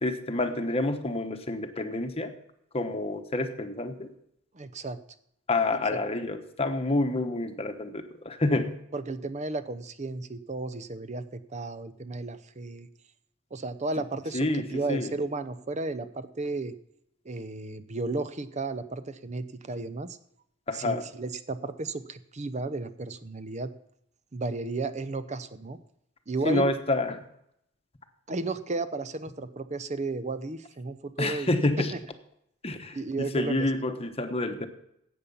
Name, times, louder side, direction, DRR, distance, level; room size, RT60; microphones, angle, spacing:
voice 1, 0.0-2.3 2.7-4.1 5.5-8.8 14.3-15.1 20.7-21.0 26.4-27.2 31.2-31.9 32.6-34.7, left 2 dB, 30° left, 7 dB, 1.1 m, -28 dB
voice 2, 4.5-5.0 5.9-6.0 8.9-12.9 13.5-16.7 17.2-20.2 20.7-23.7 24.3-25.8 26.3-26.7 28.3-31.5 32.9-33.7, right 3 dB, 35° right, 13 dB, 0.7 m, -33 dB
13.0 x 8.6 x 5.4 m, 0.76 s
head